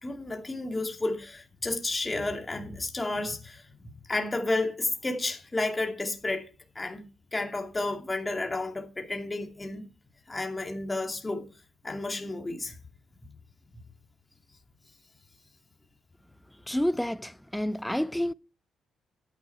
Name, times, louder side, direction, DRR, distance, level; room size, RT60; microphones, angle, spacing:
voice 1, 0.0-6.5 6.7-7.0 7.3-9.8 10.3-11.5 11.8-12.8 13.2-13.3, left 2 dB, 25° left, 2.5 m, -32 dB
voice 2, 16.7-18.3, left 1 dB, 5° left, 0.5 m, -29 dB
11.0 x 8.9 x 4.6 m
supercardioid pair, 55°, 0 cm